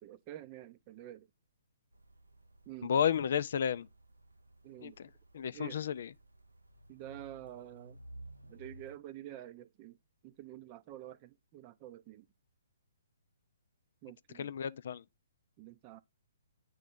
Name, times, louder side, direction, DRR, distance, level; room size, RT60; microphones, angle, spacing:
voice 1, 0.0-1.3 2.7-2.9 4.6-5.0 5.5-5.8 6.9-8.0 8.5-10.0 10.2-12.3 14.0-14.5 15.6-16.0, right 13 dB, 30° right, 0.6 m, -48 dB
sound 1, 1.9-9.0, right 1 dB, 90° right, 0.6 m, -56 dB
voice 2, 2.8-3.9 4.8-6.1 14.3-15.0, left 8 dB, 55° left, 0.4 m, -32 dB
9.1 x 3.2 x 3.7 m
figure-of-eight pair, 125°, 0 cm